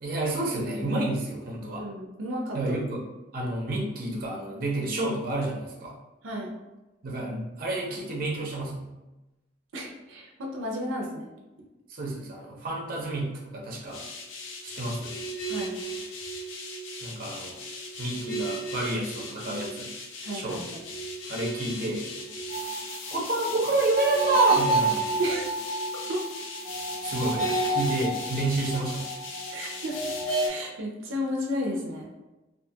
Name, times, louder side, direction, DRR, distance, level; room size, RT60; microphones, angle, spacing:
voice 1, 0.0-1.9 2.5-3.0 3.3-6.0 7.0-8.9 11.9-14.0 14.6-15.2 17.0-17.6 18.0-19.9 20.3-20.6 21.3-22.1 23.1-25.2 27.0-29.1, right 2 dB, 50° right, -2 dB, 0.6 m, -29 dB
voice 2, 1.8-2.8 6.2-6.6 9.7-11.3 15.5-15.8 20.2-20.8 25.2-25.4 26.1-26.2 29.5-30.1 30.4-32.1, equal, 90° right, -1 dB, 0.5 m, -33 dB
sound 1, 13.9-30.5, right 2 dB, 75° left, 0.5 m, -31 dB
2.5 x 2.3 x 2.7 m, 1.0 s
head